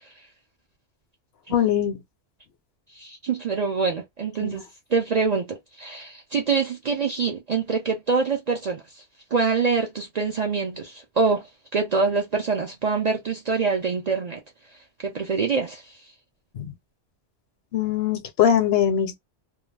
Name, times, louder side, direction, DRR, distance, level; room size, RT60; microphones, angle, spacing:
voice 1, 1.5-2.0 4.4-4.6 16.5-16.7 17.7-19.2, left 9 dB, 70° left, 0.8 m, -22 dB
voice 2, 3.0-4.6 4.9-9.0 9.3-11.5 11.7-14.4 15.0-15.8, right 4 dB, 50° right, 0.5 m, -25 dB
2.3 x 2.2 x 3.2 m
omnidirectional pair, 1.2 m